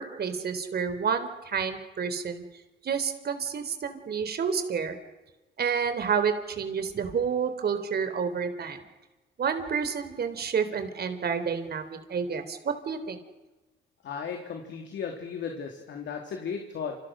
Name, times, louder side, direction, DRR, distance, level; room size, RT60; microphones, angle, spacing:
voice 1, 0.0-2.4 2.8-5.0 5.6-8.8 9.4-13.2, right 6 dB, 55° right, 9 dB, 3.9 m, -29 dB
voice 2, 14.0-17.0, left 6 dB, 65° left, 3 dB, 3.6 m, -35 dB
28.5 x 27.5 x 6.4 m, 1.1 s
cardioid pair, 90°, 20 cm